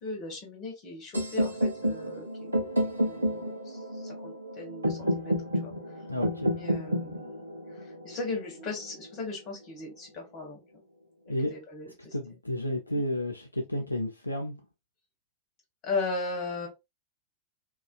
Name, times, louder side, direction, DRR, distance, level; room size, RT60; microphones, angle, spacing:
voice 1, 0.0-2.7 3.0-6.0 6.5-10.8 11.3-12.1 12.9-13.0 15.8-16.7, left 3 dB, 35° left, 1.3 m, -37 dB
sound 1, 1.1-9.1, equal, 80° right, 0.5 m, -30 dB
voice 2, 6.1-6.6 11.3-11.5 12.1-14.6, left 1 dB, 85° left, 0.3 m, -31 dB
2.4 x 2.2 x 2.3 m
figure-of-eight pair, 90°, 0 cm